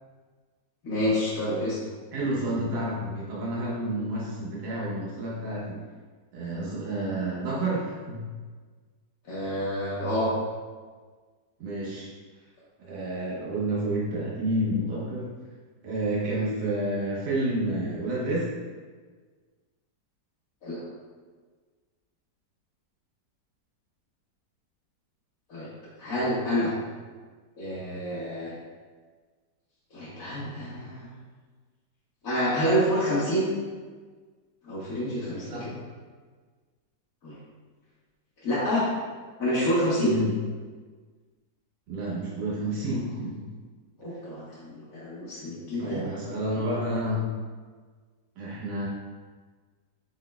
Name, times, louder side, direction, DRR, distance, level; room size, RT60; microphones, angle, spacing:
voice 1, 0.8-1.8 9.2-10.3 20.6-20.8 25.5-25.7 26.0-26.7 27.6-28.5 29.9-31.1 32.2-33.5 34.6-35.8 37.2-37.4 38.4-38.8 39.4-40.1 44.0-46.0 46.6-46.7, equal, 55° left, -11 dB, 1.4 m, -28 dB
voice 2, 2.1-5.8 6.3-8.2 11.6-12.1 12.8-15.3 15.8-18.5 35.4-35.7 40.0-40.3 41.9-43.4 45.7-47.3 48.4-48.9, right 1 dB, 75° right, -6 dB, 1.8 m, -29 dB
5.2 x 4.3 x 2.2 m, 1.5 s
omnidirectional pair, 1.8 m